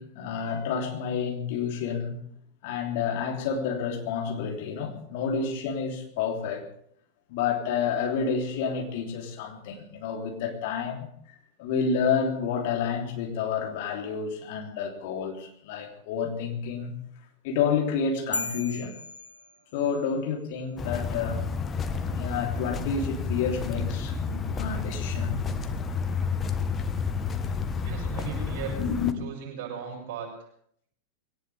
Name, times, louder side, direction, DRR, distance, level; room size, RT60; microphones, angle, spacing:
voice 1, 0.0-2.2 2.6-6.6 7.3-16.9 17.4-18.9 19.7-21.4 22.1-25.4 28.8-29.2, left 6 dB, 50° left, 2 dB, 3.4 m, -29 dB
sound 1, 18.3-20.1, left 3 dB, 80° left, 1.6 m, -36 dB
sound 2, 20.8-29.1, left 5 dB, 20° left, 1.3 m, -30 dB
voice 2, 27.8-28.8 29.2-30.3, right 7 dB, 50° right, -2 dB, 7.1 m, -37 dB
22.0 x 18.0 x 3.6 m, 0.66 s
figure-of-eight pair, 90°, 0 cm